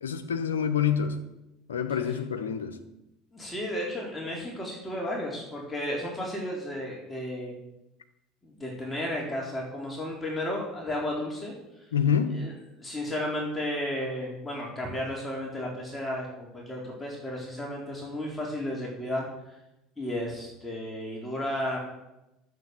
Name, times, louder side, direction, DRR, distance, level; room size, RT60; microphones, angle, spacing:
voice 1, 0.0-1.2 1.7-2.8 11.9-12.4, left 7 dB, 85° left, 6 dB, 1.0 m, -27 dB
voice 2, 3.3-7.6 8.4-11.9 12.3-12.5 12.8-19.5 20.0-21.8, left 1 dB, 15° left, -3 dB, 4.0 m, -33 dB
12.0 x 7.7 x 7.7 m, 0.93 s
hypercardioid pair, 70°, 0 cm